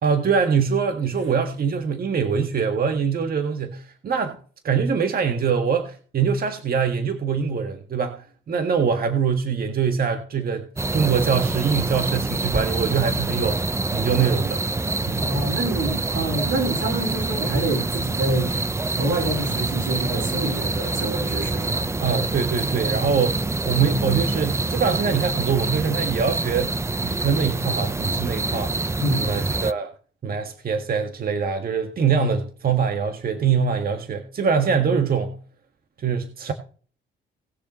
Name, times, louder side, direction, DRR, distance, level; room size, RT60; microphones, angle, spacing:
voice 1, 0.0-4.4 4.6-10.7 10.9-13.7 13.9-14.7 15.0-15.3 22.0-26.8 27.0-28.7 29.2-29.9 30.2-35.4 36.0-36.5, right 6 dB, 50° right, 1.7 m, -23 dB
sound 1, 10.8-29.7, right 3 dB, 15° right, 0.5 m, -26 dB
voice 2, 15.1-18.5 19.0-21.9 29.0-29.3, right 2 dB, 90° right, 4.7 m, -26 dB
19.5 x 6.6 x 3.1 m
cardioid pair, 90°, 20 cm